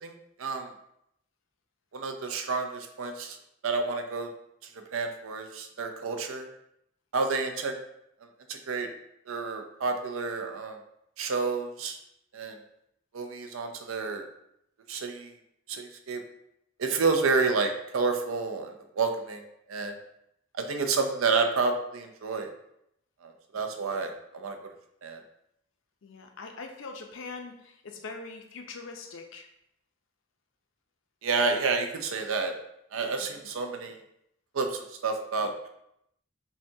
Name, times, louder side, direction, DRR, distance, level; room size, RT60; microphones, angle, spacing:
voice 1, 0.0-0.7 1.9-3.4 3.6-4.3 4.9-6.5 7.1-7.8 8.5-8.9 9.3-10.8 11.2-12.0 12.3-12.6 13.1-14.3 14.9-15.3 15.7-16.2 16.8-19.4 19.7-19.9 20.5-22.5 23.2-24.6 25.0-25.2 31.2-32.5 32.9-34.0 34.5-35.7, right 4 dB, 85° right, 5 dB, 0.5 m, -29 dB
voice 2, 26.0-29.5, left 4 dB, 70° left, 4 dB, 0.5 m, -42 dB
5.5 x 2.3 x 2.7 m, 0.79 s
head